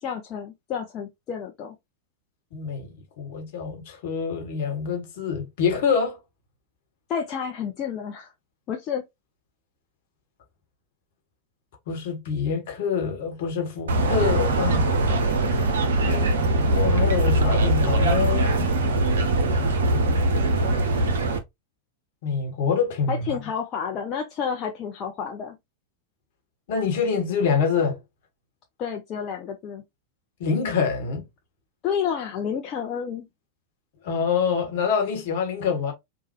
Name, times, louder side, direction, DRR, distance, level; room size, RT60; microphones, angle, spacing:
voice 1, 0.0-1.8 7.1-8.3 8.7-9.0 23.1-25.6 28.8-29.8 31.8-33.3, left 7 dB, 35° left, 0.5 m, -30 dB
voice 2, 2.5-6.2 11.9-14.9 16.0-18.8 22.2-23.2 26.7-28.0 30.4-31.2 34.0-35.9, left 6 dB, 55° left, 1.0 m, -26 dB
sound 1, 13.9-21.4, right 2 dB, 60° right, 0.6 m, -21 dB
3.1 x 2.2 x 2.8 m
figure-of-eight pair, 90°, 0 cm